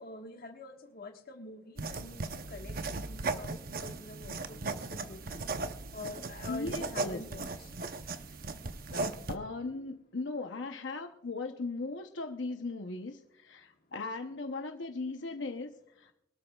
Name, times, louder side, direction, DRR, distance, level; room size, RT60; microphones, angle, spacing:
voice 1, 0.0-5.4 5.9-7.5, left 2 dB, 55° left, 4 dB, 1.5 m, -46 dB
sound 1, 1.8-9.4, right 3 dB, 50° right, 0.8 m, -37 dB
voice 2, 6.5-7.2 8.9-15.7 16.0-16.1, left 3 dB, 80° left, 5 dB, 0.8 m, -38 dB
23.5 x 13.0 x 2.3 m, 0.80 s
head